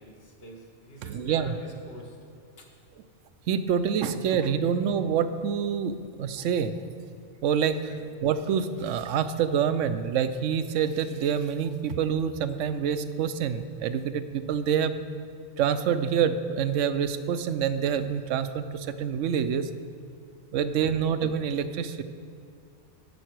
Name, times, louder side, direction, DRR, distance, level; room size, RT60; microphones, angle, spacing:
voice 1, 0.0-2.2 2.6-2.7 4.6-4.8 7.9-8.0 20.7-20.9, equal, 55° left, 1 dB, 1.5 m, -46 dB
voice 2, 1.0-1.5 3.5-6.7 7.4-15.0 15.6-19.7 20.5-22.0, right 7 dB, 85° right, 11 dB, 0.9 m, -27 dB
11.0 x 8.7 x 4.6 m, 2.5 s
omnidirectional pair, 1.2 m